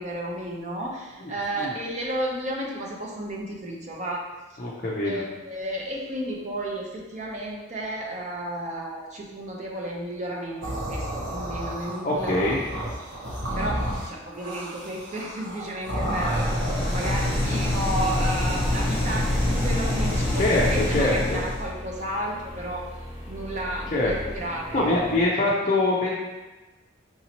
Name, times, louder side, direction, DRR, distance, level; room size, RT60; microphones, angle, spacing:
voice 1, 0.0-4.2 4.5-4.6 5.0-12.5 13.6-16.5 16.9-22.8 23.3-24.9, right 1 dB, 35° right, -2 dB, 0.7 m, -32 dB
voice 2, 4.6-5.2 12.0-12.6 20.3-21.4 23.9-24.1 24.7-26.2, left 2 dB, 35° left, -5 dB, 0.5 m, -24 dB
sound 1, 10.6-16.9, right 1 dB, 70° right, 1.2 m, -31 dB
sound 2, 16.0-21.7, left 1 dB, 5° left, 1.2 m, -25 dB
sound 3, 17.7-25.3, equal, 15° right, 1.1 m, -41 dB
5.8 x 2.8 x 2.9 m, 1.2 s
head